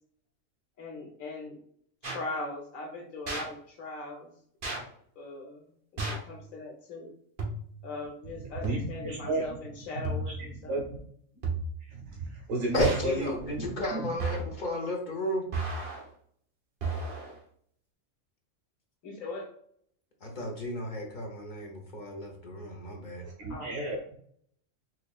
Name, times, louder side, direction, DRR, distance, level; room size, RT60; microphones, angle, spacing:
voice 1, 0.8-1.6 2.0-4.3 5.2-5.6 5.9-7.1 7.8-10.8 19.0-19.5 23.5-23.7, left 3 dB, 80° left, 2 dB, 1.4 m, -40 dB
sound 1, 2.0-2.2 3.3-3.5 4.6-4.8 6.0-6.3 7.4-7.8 8.6-9.0 10.0-10.5 11.4-11.9 12.8-13.1 14.2-14.6 15.5-16.0 16.8-17.3, right 3 dB, 45° right, 1.1 m, -33 dB
voice 2, 8.4-9.6 10.2-11.0 11.8-14.1 23.4-24.2, right 1 dB, 80° right, -2 dB, 1.2 m, -33 dB
voice 3, 12.7-15.4 20.2-23.2, equal, 45° left, 1 dB, 0.8 m, -33 dB
4.3 x 3.1 x 2.3 m, 0.63 s
omnidirectional pair, 1.4 m